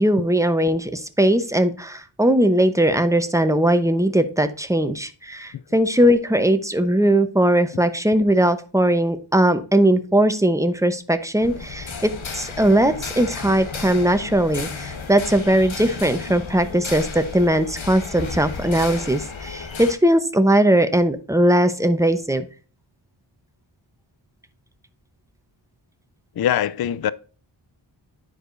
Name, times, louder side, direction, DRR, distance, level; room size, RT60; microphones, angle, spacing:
voice 1, 0.0-22.5, right 1 dB, 5° right, 0.8 m, -19 dB
sound 1, 11.4-19.9, left 4 dB, 70° left, 1.1 m, -33 dB
voice 2, 26.4-27.1, left 10 dB, 50° left, 0.4 m, -22 dB
10.5 x 4.8 x 2.5 m
wide cardioid pair, 60°, 49 cm